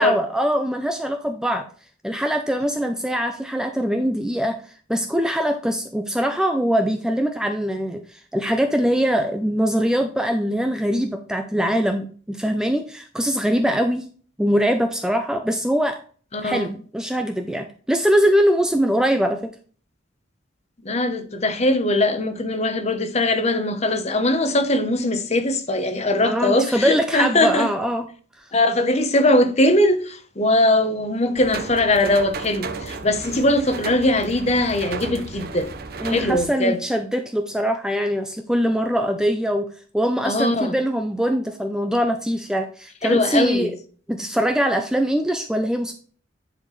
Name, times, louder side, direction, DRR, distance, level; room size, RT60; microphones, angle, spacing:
voice 1, 0.0-1.6 2.0-4.6 4.9-14.0 14.4-16.0 16.4-19.4 26.2-28.1 36.0-39.6 39.9-43.7 44.1-45.9, equal, 5° right, 0.5 m, -22 dB
voice 2, 16.3-16.7 20.8-27.7 28.5-35.7 36.0-36.8 40.2-40.8 43.0-43.7, left 1 dB, 35° left, 0.9 m, -20 dB
sound 1, 31.4-36.5, right 4 dB, 50° right, 0.8 m, -34 dB
10.0 x 4.3 x 3.2 m
head